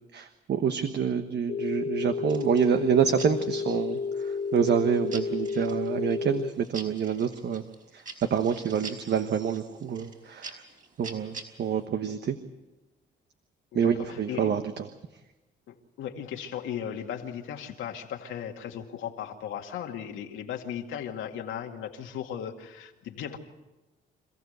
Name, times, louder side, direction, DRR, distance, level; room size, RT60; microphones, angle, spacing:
voice 1, 0.1-7.6 7.9-8.0 8.3-10.6 11.0-12.4 13.7-14.9, right 7 dB, 60° right, 8 dB, 1.2 m, -27 dB
Telephone, 1.5-6.5, left 5 dB, 50° left, 1.2 m, -31 dB
sound 1, 2.3-11.8, right 4 dB, 40° right, 5.2 m, -47 dB
voice 2, 13.7-14.6 15.7-23.4, left 9 dB, 85° left, 2 dB, 2.3 m, -37 dB
27.0 x 15.5 x 8.1 m, 1.1 s
cardioid pair, 90°, 20 cm